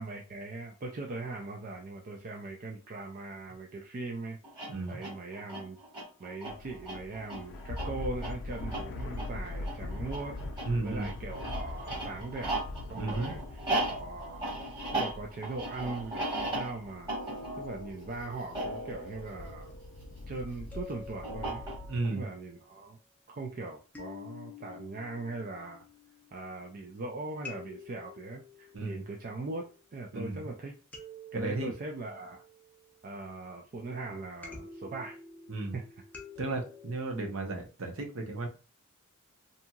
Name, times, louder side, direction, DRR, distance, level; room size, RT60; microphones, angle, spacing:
voice 1, 0.0-4.4 4.9-5.8 6.2-12.6 12.9-13.4 13.8-14.5 14.9-17.1 17.6-19.7 20.3-21.6 22.1-23.0 23.3-25.9 26.3-30.8 31.3-32.4 33.0-35.2 35.7-35.9, right 3 dB, 40° right, 1 dB, 0.4 m, -40 dB
sound 1, 4.4-20.2 21.2-22.1, right 2 dB, 20° right, 1.5 m, -37 dB
voice 2, 4.7-5.0 10.6-11.1 12.9-13.3 21.9-22.3 28.7-29.0 30.1-30.4 31.3-31.7 35.5-35.8 36.4-38.5, right 2 dB, 65° right, 2 dB, 0.7 m, -34 dB
sound 2, 6.5-21.9, left 2 dB, 55° left, 0.4 m, -42 dB
sound 3, 17.8-19.9 20.7-22.2 23.9-26.8 27.4-30.0 30.9-33.1 34.4-37.4, left 4 dB, 10° left, 0.6 m, -50 dB
2.8 x 2.6 x 2.3 m, 0.34 s
head